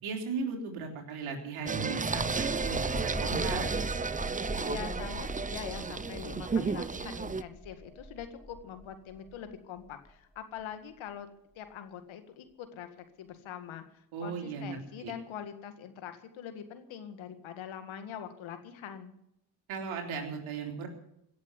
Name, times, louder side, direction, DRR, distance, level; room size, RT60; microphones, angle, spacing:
voice 1, 0.0-3.7 14.1-15.1 19.7-20.9, right 5 dB, 80° right, 2 dB, 3.5 m, -37 dB
Singing, 1.7-7.4, right 4 dB, 15° right, 0.6 m, -33 dB
sound 1, 2.1-9.5 9.9-10.1, right 1 dB, ahead, 3.6 m, -40 dB
voice 2, 4.6-11.3 11.6-19.1, left 9 dB, 75° left, 8 dB, 2.0 m, -43 dB
16.5 x 7.4 x 9.7 m, 0.78 s
supercardioid pair, 60°, 48 cm